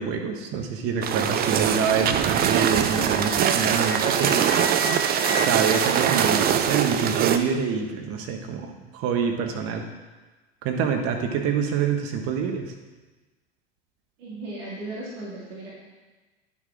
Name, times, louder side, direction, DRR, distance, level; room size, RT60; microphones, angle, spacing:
voice 1, 0.0-4.6 5.4-9.8 10.6-12.7, right 6 dB, 45° right, 4 dB, 1.3 m, -26 dB
sound 1, 1.0-7.4, right 9 dB, 30° right, 0.6 m, -22 dB
Wind instrument woodwind instrument, 2.2-6.8, left 2 dB, 30° left, 1.5 m, -36 dB
voice 2, 14.2-15.7, right 2 dB, 65° right, -6 dB, 2.4 m, -36 dB
9.7 x 6.3 x 3.6 m, 1.2 s
figure-of-eight pair, 80°, 32 cm